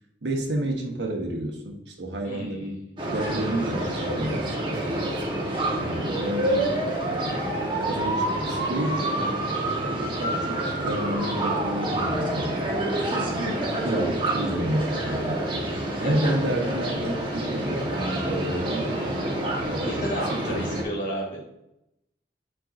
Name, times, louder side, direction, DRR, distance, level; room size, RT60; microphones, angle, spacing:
voice 1, 0.2-4.9 5.8-6.8 7.2-9.1 9.8-12.6 13.8-15.4 16.0-19.3 19.6-20.0 20.3-20.8, right 1 dB, 80° right, 2 dB, 1.1 m, -30 dB
sound 1, 3.0-20.8, right 1 dB, 25° right, 1.1 m, -27 dB
voice 2, 19.8-21.4, right 1 dB, 45° left, -5 dB, 2.1 m, -32 dB
8.8 x 4.6 x 2.5 m, 0.85 s
head